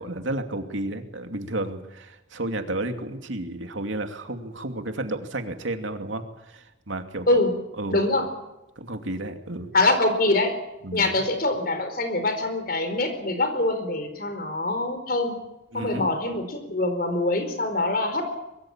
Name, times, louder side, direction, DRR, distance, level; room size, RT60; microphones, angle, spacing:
voice 1, 0.0-7.4 7.8-8.0 8.8-9.7 10.8-11.1 15.7-16.1, right 1 dB, 80° right, 6 dB, 2.6 m, -32 dB
voice 2, 7.9-8.2 9.7-10.5 10.9-15.4 15.7-18.4, left 2 dB, 50° left, 8 dB, 4.6 m, -24 dB
23.5 x 22.5 x 7.5 m, 0.96 s
head